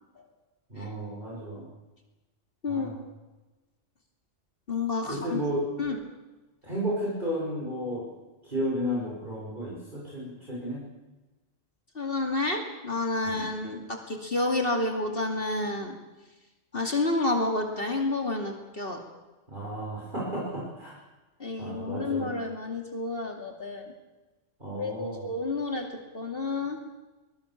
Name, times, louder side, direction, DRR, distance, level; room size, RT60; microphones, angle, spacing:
voice 1, 0.7-1.7 2.7-3.0 5.0-5.7 6.6-8.1 8.4-10.8 13.2-13.4 19.5-21.0 21.6-22.3 24.6-25.3, equal, 40° right, -4 dB, 5.9 m, -33 dB
voice 2, 4.7-5.4 5.8-6.0 11.9-15.9 16.7-19.0 21.4-23.9 24.8-25.9 26.1-26.8, left 2 dB, 45° left, 3 dB, 2.7 m, -30 dB
24.5 x 20.0 x 7.3 m, 1.1 s
omnidirectional pair, 1.3 m